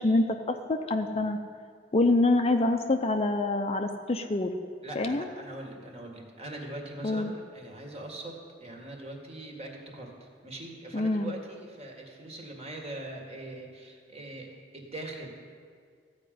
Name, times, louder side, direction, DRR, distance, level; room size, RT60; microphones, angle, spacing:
voice 1, 0.0-1.4 1.9-4.5 5.0-5.3 7.0-7.3 10.9-11.3, left 2 dB, 35° left, 6 dB, 0.6 m, -26 dB
voice 2, 4.8-8.3 8.6-15.3, right 1 dB, 35° right, 1 dB, 1.9 m, -42 dB
15.0 x 5.2 x 9.2 m, 2.1 s
head